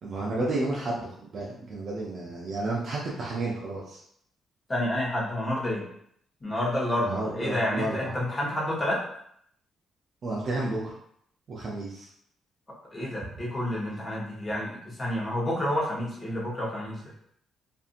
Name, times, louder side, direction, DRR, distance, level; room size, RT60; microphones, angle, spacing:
voice 1, 0.0-4.0 7.0-8.1 10.2-10.9 11.5-12.1, right 2 dB, 55° right, -4 dB, 0.6 m, -31 dB
voice 2, 4.7-5.8 6.4-9.0 12.9-17.0, left 1 dB, 20° left, -4 dB, 1.0 m, -29 dB
2.7 x 2.5 x 2.5 m, 0.68 s
cardioid pair, 90°, 0 cm